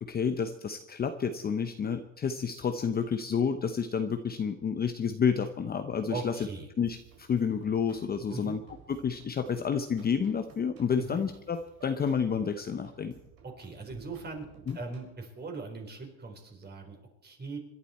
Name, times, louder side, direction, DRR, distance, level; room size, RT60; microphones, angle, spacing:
voice 1, 0.0-6.4 6.8-8.6 8.9-13.1 14.7-14.8, left 6 dB, 25° left, 7 dB, 0.9 m, -30 dB
voice 2, 6.1-6.7 8.3-8.6 11.0-11.2 13.4-14.4 14.7-17.6, right 3 dB, 25° right, 3 dB, 3.8 m, -40 dB
sound 1, 6.8-15.2, right 7 dB, 55° right, 4.5 m, -57 dB
26.0 x 11.5 x 4.3 m, 0.88 s
cardioid pair, 130°, 39 cm